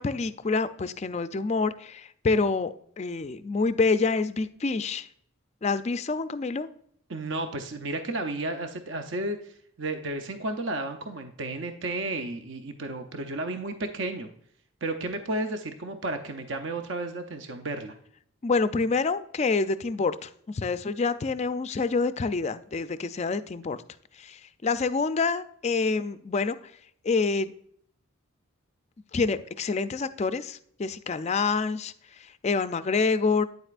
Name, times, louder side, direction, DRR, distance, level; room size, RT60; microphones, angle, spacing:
voice 1, 0.0-5.1 5.6-6.7 18.4-23.8 24.2-26.6 27.0-27.5 29.1-31.9 32.4-33.4, left 4 dB, 30° left, 13 dB, 0.3 m, -27 dB
voice 2, 7.1-14.3 14.8-17.9, right 2 dB, 55° right, 6 dB, 0.6 m, -33 dB
9.3 x 7.8 x 2.4 m, 0.65 s
head